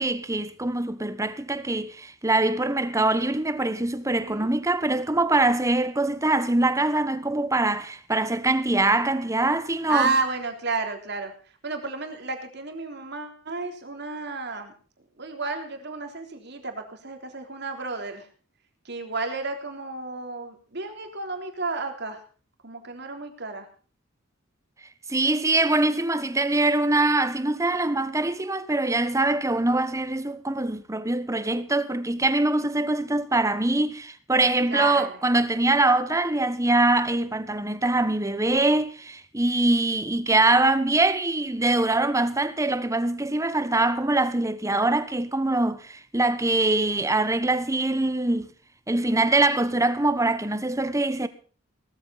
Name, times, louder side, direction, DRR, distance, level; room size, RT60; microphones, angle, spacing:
voice 1, 0.0-10.1 25.1-48.5 48.9-51.3, right 2 dB, 15° right, 1.2 m, -23 dB
voice 2, 4.0-4.5 9.9-11.3 11.6-14.7 15.2-18.3 18.9-22.2 22.6-23.7 34.7-35.2, right 3 dB, 55° right, 3.6 m, -32 dB
18.5 x 14.0 x 4.1 m
head